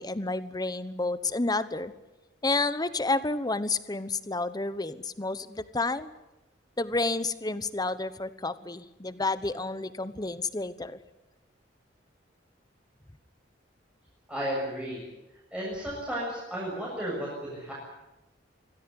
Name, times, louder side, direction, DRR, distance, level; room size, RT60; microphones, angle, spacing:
voice 1, 0.0-1.9 2.4-6.1 6.8-11.0, left 3 dB, 20° left, 14 dB, 1.1 m, -30 dB
voice 2, 14.3-15.0 15.5-17.7, equal, 5° right, -6 dB, 7.2 m, -33 dB
24.5 x 16.5 x 9.9 m, 1.0 s
head